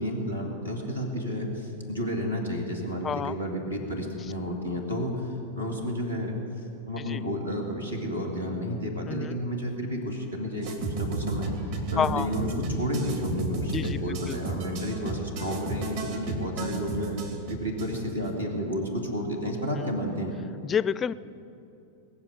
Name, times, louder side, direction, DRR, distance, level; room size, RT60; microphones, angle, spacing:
voice 1, 0.0-5.3 5.6-6.4 6.9-11.5 11.9-17.2 17.5-20.3, equal, 85° right, 0 dB, 2.5 m, -31 dB
voice 2, 3.0-3.3 7.1-7.2 9.1-9.4 12.0-12.3 13.7-14.0 14.3-14.4 20.6-21.1, left 7 dB, 20° left, 18 dB, 0.4 m, -28 dB
sound 1, 10.6-18.3, right 3 dB, 55° right, 2.7 m, -33 dB
20.0 x 7.3 x 8.7 m, 2.7 s
figure-of-eight pair, 90°, 0 cm